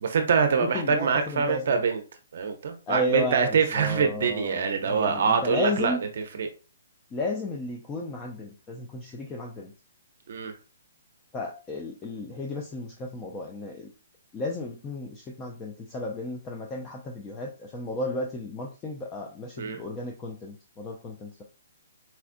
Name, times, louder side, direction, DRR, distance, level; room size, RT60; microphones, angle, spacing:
voice 1, 0.0-2.0 2.3-6.5 10.3-10.5 19.6-19.8, right 6 dB, 60° right, 0.6 m, -25 dB
voice 2, 0.6-1.8 2.9-6.0 7.1-9.7 11.3-13.9 14.3-21.4, left 1 dB, 15° left, 0.4 m, -33 dB
4.3 x 2.3 x 2.5 m
hypercardioid pair, 160°, 0 cm